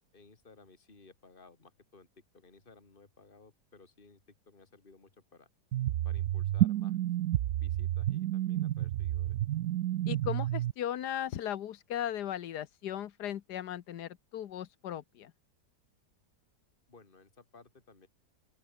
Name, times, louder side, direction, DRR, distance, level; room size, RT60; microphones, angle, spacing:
voice 1, 0.1-2.1 2.3-5.5 6.0-7.0 7.6-9.4 16.9-18.1, left 4 dB, 30° left, 2.9 m, -58 dB
sound 1, 5.7-10.7, right 13 dB, 65° right, 1.0 m, -30 dB
voice 2, 10.1-15.3, left 11 dB, 75° left, 1.5 m, -37 dB
open air
omnidirectional pair, 1.8 m